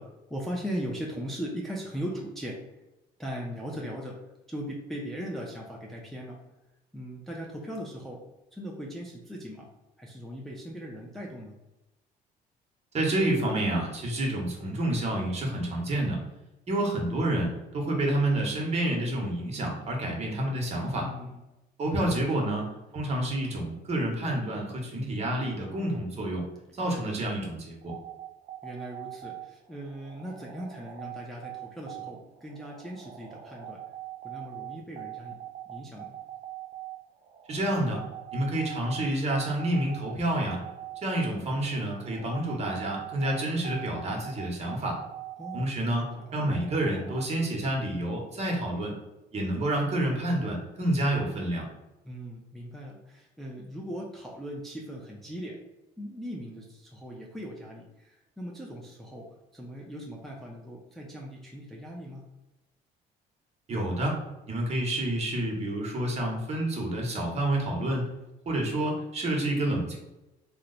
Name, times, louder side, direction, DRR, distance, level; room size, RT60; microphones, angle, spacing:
voice 1, 0.0-2.6 3.2-4.2 4.5-6.4 6.9-8.2 8.5-9.7 10.0-11.5 20.9-21.4 21.8-22.2 26.9-27.0 28.6-33.8 34.2-35.4 35.7-36.1 45.4-46.1 52.0-55.6 56.0-59.2 59.5-62.2, equal, ahead, -3 dB, 0.5 m, -39 dB
voice 2, 12.9-16.2 16.7-21.1 21.8-26.4 26.7-27.9 37.5-38.1 38.3-40.6 41.0-45.0 45.5-49.0 49.3-51.7 63.7-64.2 64.5-68.1 68.4-70.0, right 1 dB, 40° right, 0 dB, 1.0 m, -29 dB
sound 1, 27.8-47.2, right 13 dB, 55° right, 0.5 m, -42 dB
3.0 x 2.0 x 3.8 m, 0.98 s
cardioid pair, 110°, 17 cm